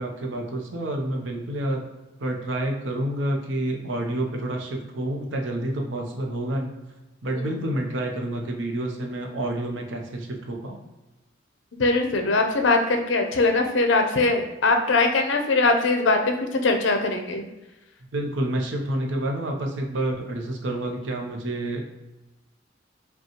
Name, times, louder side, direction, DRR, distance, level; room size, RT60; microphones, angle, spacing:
voice 1, 0.0-1.8 2.2-6.7 7.2-10.8 18.0-21.8, right 1 dB, 70° right, 2 dB, 0.7 m, -28 dB
voice 2, 11.8-16.2 16.6-17.4, left 3 dB, 70° left, 5 dB, 0.6 m, -21 dB
5.2 x 2.3 x 2.9 m, 1.0 s
head